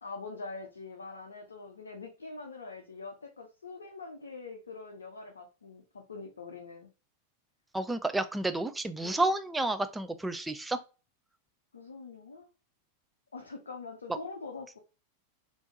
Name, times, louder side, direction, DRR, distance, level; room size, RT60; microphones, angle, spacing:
voice 1, 0.0-6.9 9.0-9.2 11.7-12.5 13.3-14.8, left 3 dB, 70° left, 3 dB, 0.5 m, -44 dB
voice 2, 7.7-10.8, right 2 dB, 10° right, 10 dB, 0.3 m, -30 dB
3.4 x 2.6 x 2.9 m, 0.33 s
figure-of-eight pair, 90°, 0 cm